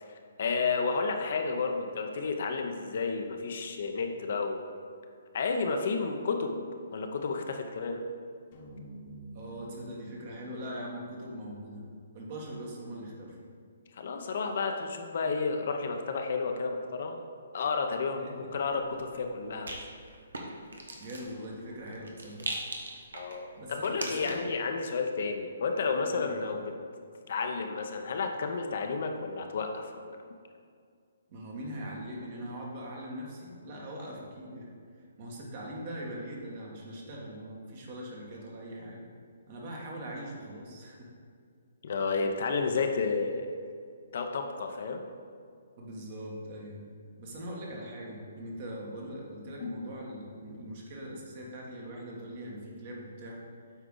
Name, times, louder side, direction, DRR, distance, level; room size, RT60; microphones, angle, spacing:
voice 1, 0.4-4.6 5.3-6.5 6.9-8.0 14.0-17.2 17.5-19.8 23.1-26.7 27.3-30.2 41.8-43.5 44.1-45.0 49.6-49.7, left 4 dB, 60° left, 4 dB, 0.7 m, -31 dB
sound 1, 8.5-12.8, right 2 dB, 40° left, 1.1 m, -50 dB
voice 2, 9.3-11.8 12.1-13.4 18.2-18.5 21.0-22.5 23.6-24.5 26.0-26.4 31.3-34.7 35.2-39.1 39.5-41.1 45.8-46.9 47.2-53.4, equal, 45° right, -2 dB, 1.7 m, -41 dB
Rattle, 18.5-24.6, right 2 dB, 80° right, 1.1 m, -42 dB
8.1 x 4.7 x 3.9 m, 2.2 s
hypercardioid pair, 135°, 0 cm